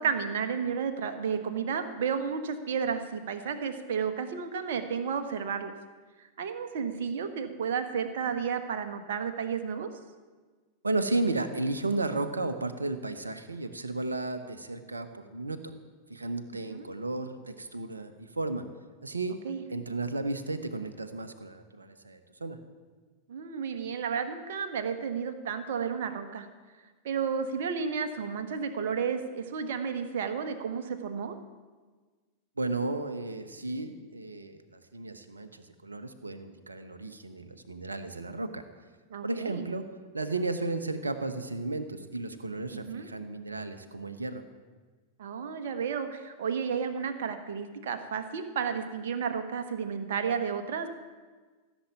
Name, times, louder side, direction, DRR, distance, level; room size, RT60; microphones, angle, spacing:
voice 1, 0.0-5.7 6.2-9.9 16.7-16.9 19.4-19.6 23.3-26.5 27.0-31.3 39.1-39.7 42.7-43.1 45.2-50.9, right 6 dB, 55° right, 8 dB, 1.4 m, -32 dB
voice 2, 10.8-15.7 16.1-18.7 19.0-19.4 19.7-22.6 32.6-38.6 39.2-39.8 40.1-44.4, right 2 dB, 80° right, 9 dB, 1.0 m, -34 dB
15.5 x 7.3 x 9.2 m, 1.4 s
figure-of-eight pair, 90°, 0 cm